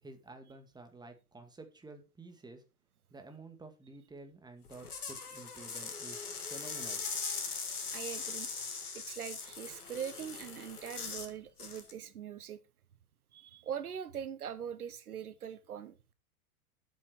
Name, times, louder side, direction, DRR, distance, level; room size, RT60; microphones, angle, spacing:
voice 1, 0.0-2.6 3.1-7.0, right 3 dB, 10° right, 2.0 m, -51 dB
sound 1, 4.7-11.3 11.6-11.9, left 5 dB, 80° left, 2.3 m, -40 dB
voice 2, 7.9-8.5 8.9-12.6 13.3-16.1, right 8 dB, 75° right, 1.1 m, -42 dB
8.6 x 8.3 x 4.6 m
figure-of-eight pair, 95°, 45 cm